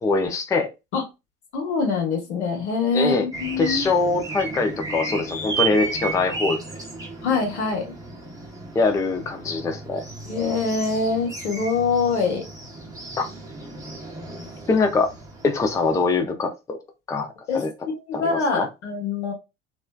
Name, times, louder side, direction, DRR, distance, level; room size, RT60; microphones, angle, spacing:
voice 1, 0.0-0.7 2.9-3.2 3.6-6.6 8.7-10.0 13.2-13.3 14.7-15.1 15.4-16.8 17.1-17.3 17.5-17.7 18.1-18.7, left 3 dB, 10° left, 0.4 m, -23 dB
voice 2, 1.5-3.9 7.2-8.0 10.2-12.5 17.5-17.6 18.1-19.3, left 4 dB, 70° left, 1.1 m, -24 dB
sound 1, 3.3-16.1, right 4 dB, 10° right, 0.9 m, -34 dB
3.0 x 2.5 x 2.2 m
figure-of-eight pair, 65°, 35 cm